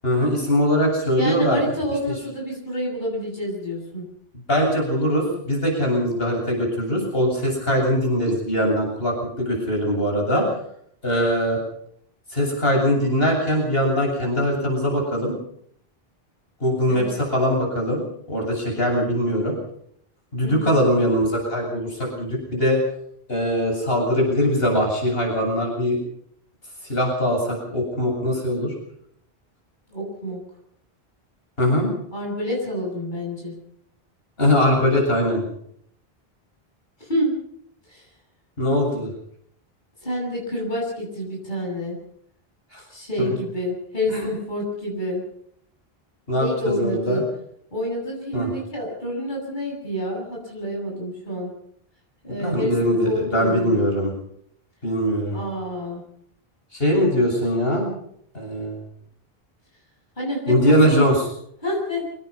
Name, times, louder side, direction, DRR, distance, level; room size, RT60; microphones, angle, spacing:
voice 1, 0.0-1.6 4.5-10.5 11.0-11.6 12.3-15.4 16.6-18.0 18.3-19.6 20.3-22.8 23.3-26.0 26.8-28.7 31.6-31.9 34.4-35.4 38.6-39.1 42.7-42.8 43.2-43.3 44.1-44.3 46.3-47.2 48.3-48.5 52.4-54.1 54.8-55.4 56.7-57.9 58.3-58.8 60.5-61.2, equal, 70° left, 0 dB, 8.3 m, -21 dB
voice 2, 1.1-4.1 16.9-17.1 20.4-20.8 29.9-30.4 32.1-33.5 37.0-37.3 37.9-38.1 40.0-42.0 42.9-45.2 46.3-47.2 47.7-51.5 52.2-53.9 55.3-56.0 60.2-61.0 61.6-62.0, equal, 50° left, -2 dB, 8.3 m, -28 dB
26.0 x 19.5 x 5.7 m, 0.67 s
omnidirectional pair, 1.0 m